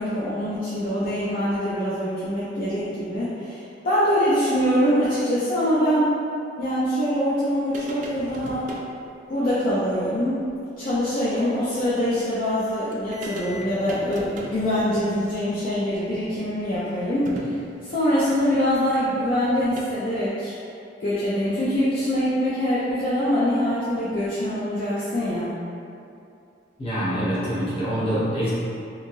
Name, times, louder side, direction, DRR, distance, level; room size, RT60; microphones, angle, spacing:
voice 1, 0.0-6.2 6.6-8.7 9.3-10.4 10.8-17.5 17.8-20.5 21.0-25.5, equal, 50° left, -11 dB, 0.5 m, -24 dB
sound 1, 7.7-8.9 10.5-10.6 10.9-11.0 12.6-12.7 12.9-19.8, right 1 dB, 45° right, 0.3 m, -40 dB
voice 2, 26.8-28.5, equal, 30° left, -11 dB, 1.0 m, -25 dB
2.9 x 2.7 x 2.6 m, 2.6 s
head